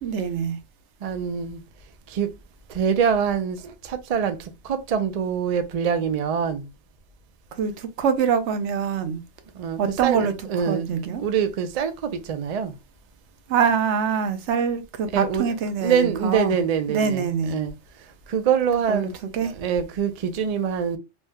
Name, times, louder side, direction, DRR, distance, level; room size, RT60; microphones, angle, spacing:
voice 1, 0.0-0.6 7.6-9.2 9.8-10.3 10.7-11.2 13.5-16.6 16.9-17.6 18.9-19.1 19.3-19.5, right 6 dB, 80° right, 0.9 m, -24 dB
voice 2, 1.0-1.6 2.1-2.3 2.7-6.7 9.5-10.9 11.2-12.7 15.1-15.4 15.8-17.7 18.3-19.1 19.4-21.0, right 7 dB, 60° right, 0.4 m, -24 dB
3.1 x 2.1 x 3.4 m
omnidirectional pair, 1.2 m